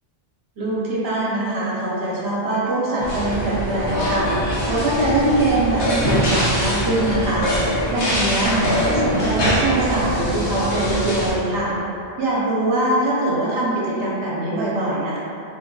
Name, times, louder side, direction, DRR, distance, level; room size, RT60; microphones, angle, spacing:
voice 1, 0.6-7.5 7.9-11.7 12.2-15.2, right 1 dB, 70° right, -6 dB, 0.8 m, -22 dB
sound 1, 3.0-11.3, equal, 75° left, 1.0 m, -23 dB
3.6 x 2.7 x 2.6 m, 2.8 s
omnidirectional pair, 1.1 m